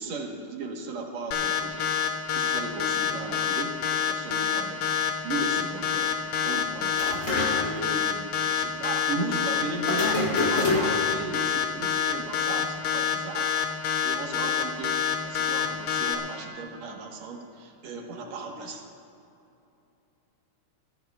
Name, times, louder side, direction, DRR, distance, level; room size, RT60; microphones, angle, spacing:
voice 1, 0.0-1.9 2.3-3.8 4.1-4.8 5.2-6.1 6.4-7.3 7.6-13.5 14.0-18.9, right 3 dB, 65° right, 2 dB, 2.3 m, -36 dB
sound 1, 1.3-16.1, left 9 dB, 85° left, 2.8 m, -26 dB
sound 2, 6.9-8.1 9.8-11.2, left 2 dB, 30° left, 1.7 m, -27 dB
23.5 x 15.0 x 2.4 m, 2.8 s
omnidirectional pair, 3.7 m